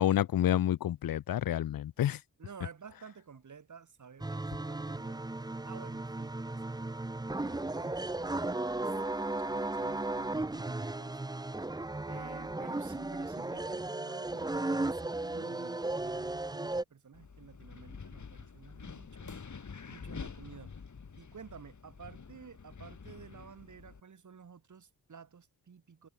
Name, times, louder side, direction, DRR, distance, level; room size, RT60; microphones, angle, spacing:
voice 1, 0.0-2.2, left 11 dB, 65° left, 0.6 m, -29 dB
voice 2, 2.4-6.6 7.3-9.0 9.4-11.2 12.1-20.9 21.2-26.1, right 6 dB, 50° right, 1.9 m, -52 dB
sound 1, 4.2-16.8, right 2 dB, 10° right, 0.7 m, -35 dB
Wind, 17.1-24.0, left 5 dB, 50° left, 3.4 m, -47 dB
cardioid pair, 60°, 37 cm